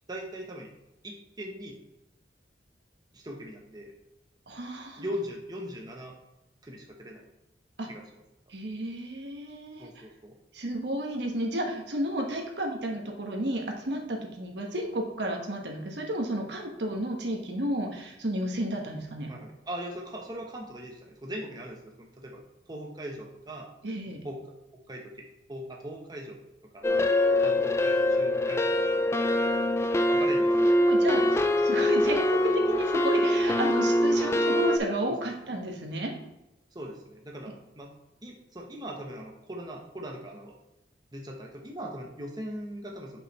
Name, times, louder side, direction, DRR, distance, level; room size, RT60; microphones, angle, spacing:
voice 1, 0.1-0.7 1.0-1.8 3.1-3.9 5.0-6.1 6.6-7.3 7.9-8.0 9.8-10.4 19.3-23.7 24.2-24.4 24.9-26.4 26.7-27.0 27.4-29.0 30.0-30.5 31.2-31.4 35.1-35.2 36.7-37.9 38.2-40.5 41.1-43.2, equal, 25° right, 0 dB, 0.8 m, -40 dB
voice 2, 4.5-5.0 7.8-7.9 8.5-9.9 10.5-19.3 23.8-24.2 30.8-36.1, right 1 dB, 75° right, 2 dB, 1.2 m, -32 dB
sound 1, 26.8-34.8, left 1 dB, 15° left, 0.3 m, -24 dB
6.4 x 5.5 x 3.0 m, 0.94 s
head